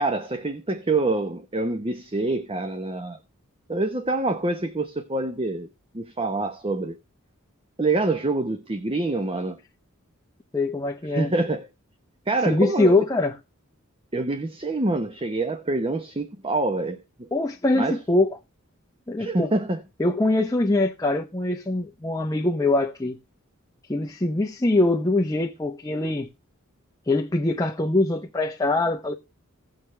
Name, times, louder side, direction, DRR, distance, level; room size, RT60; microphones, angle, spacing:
voice 1, 0.0-3.2 3.7-5.7 5.9-7.0 7.8-9.6 11.1-11.7 12.3-13.0 14.1-17.3 17.7-18.0 19.2-19.8, right 2 dB, 25° right, 1.0 m, -26 dB
voice 2, 10.5-11.3 12.4-13.3 17.3-18.3 19.1-19.5 20.0-23.2 23.9-26.3 27.1-29.1, left 2 dB, 15° left, 0.8 m, -23 dB
17.0 x 6.6 x 3.3 m
head